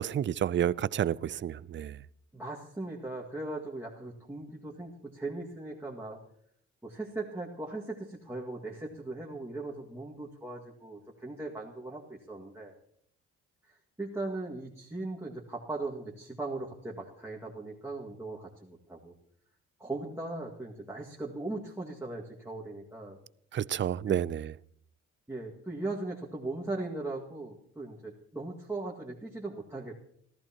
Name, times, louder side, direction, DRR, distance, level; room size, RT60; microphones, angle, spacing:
voice 1, 0.0-2.0 23.5-24.5, right 10 dB, 40° right, 19 dB, 0.5 m, -30 dB
voice 2, 2.3-6.2 6.8-12.7 13.7-19.1 19.8-23.2 24.1-24.2 25.3-30.0, right 2 dB, 10° right, -4 dB, 2.0 m, -39 dB
27.0 x 14.0 x 3.0 m, 0.67 s
cardioid pair, 90°, 30 cm